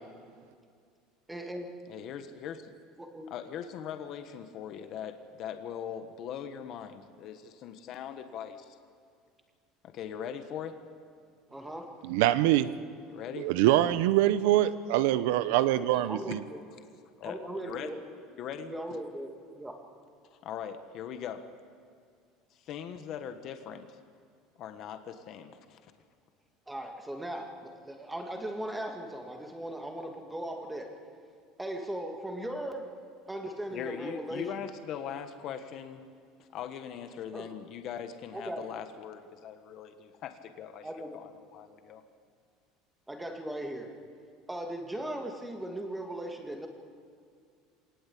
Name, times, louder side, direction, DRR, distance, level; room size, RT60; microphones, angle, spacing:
voice 1, 1.3-1.7 3.0-3.3 11.5-11.9 16.1-16.6 17.2-18.0 18.6-19.8 26.7-30.9 31.6-32.9 33.3-34.5 37.3-37.5 38.3-38.6 40.8-41.2 43.1-43.9 44.5-46.7, right 1 dB, 5° right, 3 dB, 2.0 m, -38 dB
voice 2, 1.9-2.7 3.3-8.7 9.8-10.8 13.1-13.5 15.9-16.0 17.2-17.4 17.6-17.9 18.4-18.7 20.3-21.4 22.6-23.9 24.6-25.8 33.7-36.0 36.4-42.0, left 8 dB, 40° left, 8 dB, 1.3 m, -40 dB
voice 3, 12.0-12.7 13.4-16.4, right 14 dB, 80° right, 14 dB, 0.8 m, -24 dB
26.0 x 19.0 x 8.5 m, 2.2 s
cardioid pair, 170°, 0 cm